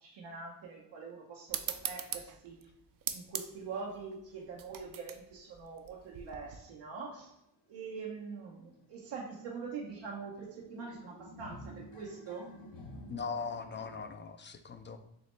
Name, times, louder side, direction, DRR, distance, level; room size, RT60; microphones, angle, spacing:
voice 1, 0.0-2.7 3.1-7.3 7.7-12.5, right 5 dB, 85° right, -3 dB, 0.8 m, -44 dB
sound 1, 1.5-6.6, right 9 dB, 50° right, 0.5 m, -41 dB
sound 2, 7.6-7.7 8.0-14.0, left 1 dB, 75° left, 1.0 m, -52 dB
voice 2, 13.1-15.0, left 5 dB, 30° left, 8 dB, 0.3 m, -40 dB
6.1 x 2.1 x 3.1 m, 0.79 s
cardioid pair, 85°, 44 cm